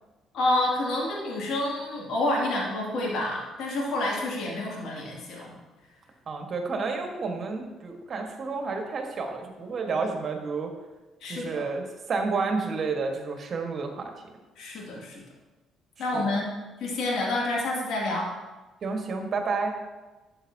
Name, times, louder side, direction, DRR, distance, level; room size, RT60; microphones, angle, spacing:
voice 1, 0.3-5.6 11.2-11.7 14.6-15.2 16.0-16.5 16.8-18.3, left 1 dB, 65° left, -2 dB, 2.5 m, -28 dB
voice 2, 6.3-10.7 11.2-14.1 16.1-16.2 18.8-19.7, right 4 dB, 50° right, 4 dB, 1.5 m, -30 dB
12.0 x 7.8 x 2.8 m, 1.2 s
hypercardioid pair, 50°, 0 cm